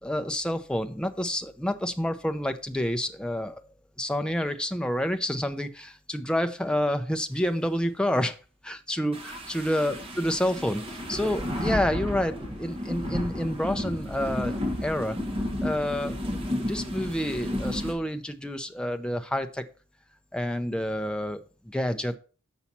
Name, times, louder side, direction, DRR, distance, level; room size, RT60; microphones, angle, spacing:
voice 1, 0.0-3.6 4.0-8.4 8.6-15.2 15.6-16.2 16.5-19.6 20.3-22.2, equal, 5° left, 7 dB, 0.6 m, -29 dB
sound 1, 9.1-17.9, left 1 dB, 25° right, 1.5 m, -32 dB
7.2 x 5.6 x 4.2 m, 0.35 s
head